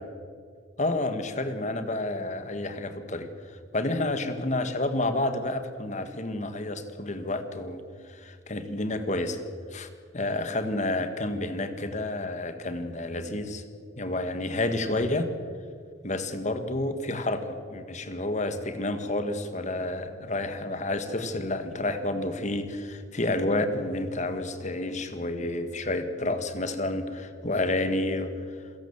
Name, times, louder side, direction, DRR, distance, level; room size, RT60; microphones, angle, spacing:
voice 1, 0.8-7.8 8.1-9.4 9.7-9.9 10.1-13.6 14.0-15.3 16.0-28.3, left 2 dB, 40° left, 9 dB, 1.8 m, -30 dB
28.0 x 16.5 x 7.3 m, 2.1 s
head